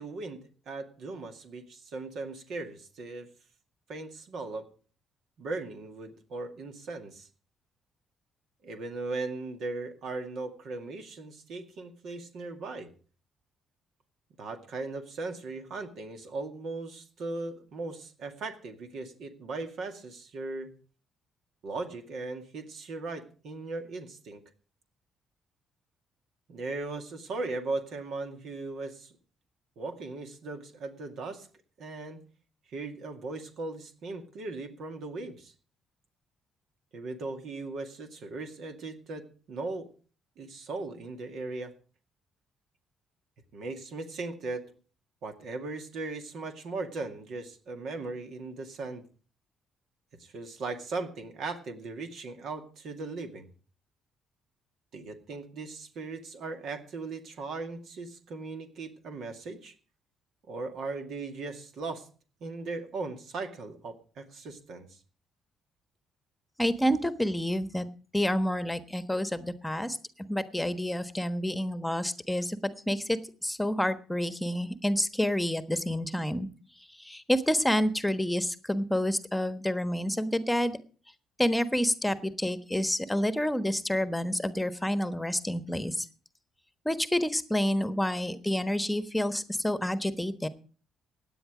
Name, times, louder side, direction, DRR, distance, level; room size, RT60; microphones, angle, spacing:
voice 1, 0.0-3.3 3.9-4.7 5.4-7.3 8.6-12.9 14.4-20.7 21.6-24.4 26.5-29.1 29.8-31.5 31.8-32.2 32.7-35.5 36.9-39.9 40.4-41.7 43.5-44.8 45.2-49.0 50.1-53.5 54.9-59.7 60.5-62.1 62.4-65.0, right 3 dB, 65° right, 6 dB, 2.2 m, -38 dB
voice 2, 66.6-67.9 68.1-72.6 72.9-76.5 76.9-80.8 81.4-86.1 86.8-90.5, equal, 10° left, 11 dB, 1.3 m, -29 dB
16.5 x 9.9 x 5.0 m, 0.39 s
hypercardioid pair, 55°, 0 cm